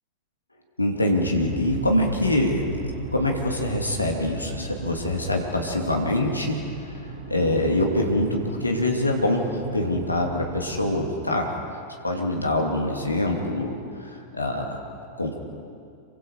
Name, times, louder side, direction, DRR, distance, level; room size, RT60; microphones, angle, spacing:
voice 1, 0.8-2.6 3.1-6.6 7.3-11.5 12.0-14.8 15.2-15.4, left 1 dB, 85° left, 1 dB, 2.6 m, -24 dB
sound 1, 1.2-11.0, right 2 dB, 55° right, 7.5 m, -36 dB
27.5 x 24.5 x 4.9 m, 2.4 s
figure-of-eight pair, 90°, 0 cm